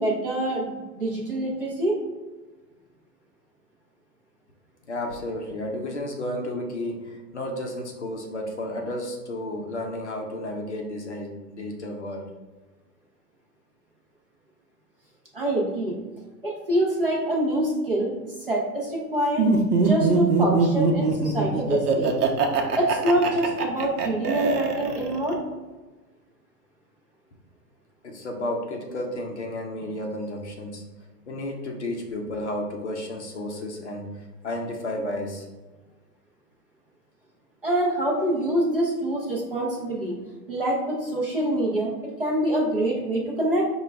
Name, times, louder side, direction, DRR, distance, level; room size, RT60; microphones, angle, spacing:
voice 1, 0.0-2.0 15.3-15.9 16.4-18.2 18.5-22.1 22.7-25.4 37.6-40.1 40.5-41.9 42.2-43.6, right 1 dB, 35° right, -3 dB, 0.5 m, -25 dB
voice 2, 4.9-12.3 28.0-30.8 31.3-34.1 34.4-35.5, left 1 dB, 45° left, 1 dB, 0.5 m, -32 dB
Laughter, 19.4-25.3, right 4 dB, 70° right, 0.7 m, -23 dB
4.8 x 2.2 x 3.3 m, 1.2 s
hypercardioid pair, 180°, 49 cm